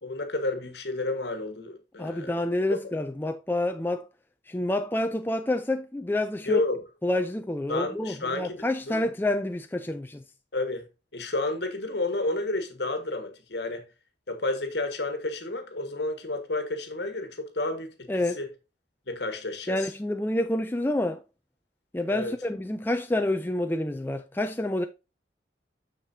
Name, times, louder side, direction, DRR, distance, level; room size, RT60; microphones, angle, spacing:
voice 1, 0.0-2.4 6.5-6.8 7.7-9.1 10.5-10.8 11.1-13.9 14.3-18.1 18.4-18.5 19.1-19.9 22.1-22.3, left 2 dB, 70° left, 1.5 m, -31 dB
voice 2, 2.0-4.1 4.5-6.6 7.0-10.2 18.1-18.4 19.7-21.2 21.9-24.9, left 1 dB, 10° left, 0.4 m, -28 dB
6.6 x 6.5 x 2.7 m
head